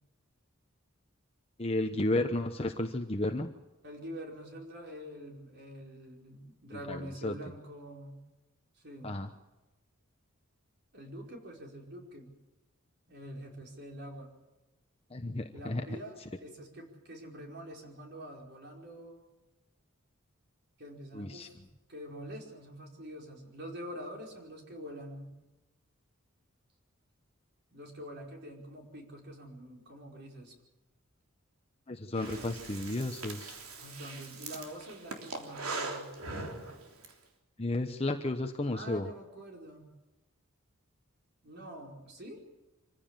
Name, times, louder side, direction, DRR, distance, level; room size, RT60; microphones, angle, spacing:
voice 1, 1.6-3.5 6.7-7.4 9.0-9.3 15.1-15.8 21.1-21.5 31.9-33.5 37.6-39.1, left 2 dB, 25° left, 5 dB, 1.0 m, -33 dB
voice 2, 3.8-8.2 8.7-9.2 10.9-12.3 13.1-14.3 15.5-19.2 20.8-21.5 21.9-25.3 27.7-30.5 33.8-36.1 38.7-39.9 41.4-42.4, equal, 50° right, 1 dB, 5.0 m, -46 dB
Breathing, 32.1-37.1, right 3 dB, 85° right, 3.4 m, -41 dB
25.5 x 15.5 x 7.5 m, 1.0 s
head